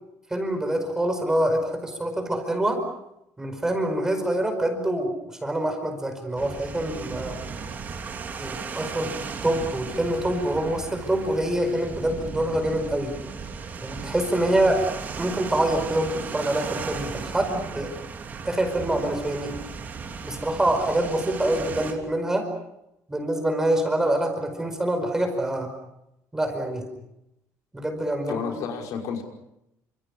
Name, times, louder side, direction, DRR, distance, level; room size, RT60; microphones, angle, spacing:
voice 1, 0.3-2.8 3.4-7.4 8.4-9.1 9.4-13.2 13.8-14.8 15.2-17.9 18.4-19.5 20.2-22.5 23.1-25.7 26.3-26.9 27.7-28.4, right 1 dB, 10° right, 6 dB, 5.0 m, -25 dB
sound 1, 6.4-21.9, right 5 dB, 30° right, 3.3 m, -36 dB
voice 2, 28.2-29.2, left 6 dB, 60° left, 2 dB, 5.5 m, -31 dB
29.5 x 27.5 x 5.5 m, 0.85 s
cardioid pair, 170°, 6 cm